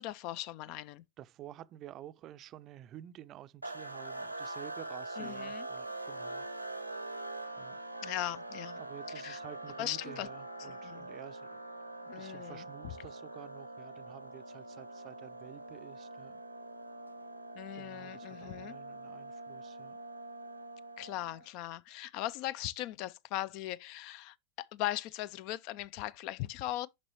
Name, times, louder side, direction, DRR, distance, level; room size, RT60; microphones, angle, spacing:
voice 1, 0.0-1.0 5.2-5.7 8.0-8.8 9.2-9.4 9.8-10.3 10.6-11.1 12.1-12.6 17.6-18.8 21.0-26.9, left 15 dB, 45° left, 0.3 m, -39 dB
voice 2, 1.2-6.5 7.6-7.8 8.8-11.6 12.0-16.4 17.7-20.0, right 12 dB, 35° right, 0.5 m, -51 dB
sound 1, 3.6-21.5, right 2 dB, 90° right, 0.9 m, -44 dB
6.6 x 5.4 x 3.0 m
figure-of-eight pair, 90°, 0 cm